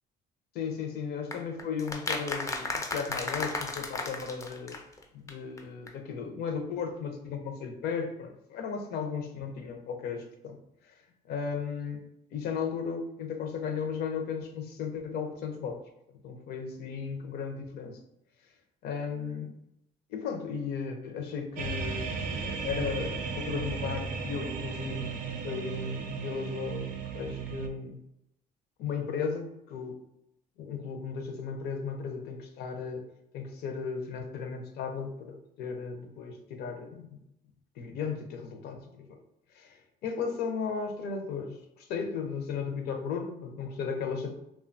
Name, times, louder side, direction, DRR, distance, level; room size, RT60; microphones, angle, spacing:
voice 1, 0.5-4.8 5.1-11.0 11.3-15.8 16.2-18.0 18.8-19.5 20.1-28.0 28.8-30.0 30.6-33.1 33.3-37.2 37.8-39.2 39.5-44.3, left 6 dB, 70° left, 5 dB, 0.5 m, -35 dB
sound 1, 1.3-5.3 5.6-5.7 5.9-6.0, left 3 dB, 20° left, 0.3 m, -34 dB
sound 2, 21.6-27.7, right 5 dB, 55° right, 0.4 m, -35 dB
2.7 x 2.2 x 2.5 m, 0.82 s
cardioid pair, 110°, 17 cm